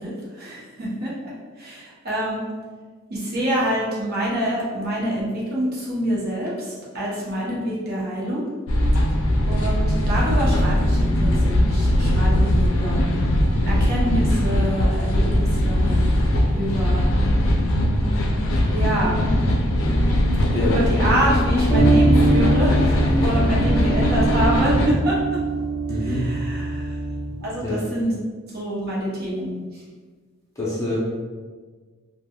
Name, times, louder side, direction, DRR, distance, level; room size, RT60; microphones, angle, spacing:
voice 1, 0.0-2.4 3.1-8.4 9.4-13.1 13.7-16.0 16.6-17.2 18.7-19.3 20.6-25.4 26.0-27.0 27.4-28.1 28.5-29.8, equal, 50° right, -6 dB, 0.7 m, -26 dB
sound 1, 8.7-24.9, left 1 dB, 70° left, 0.4 m, -20 dB
sound 2, 21.7-27.3, right 1 dB, 15° right, 0.9 m, -21 dB
voice 2, 25.9-26.3 27.6-27.8 30.6-31.0, left 1 dB, 15° left, -6 dB, 0.5 m, -26 dB
3.3 x 2.1 x 2.2 m, 1.4 s
head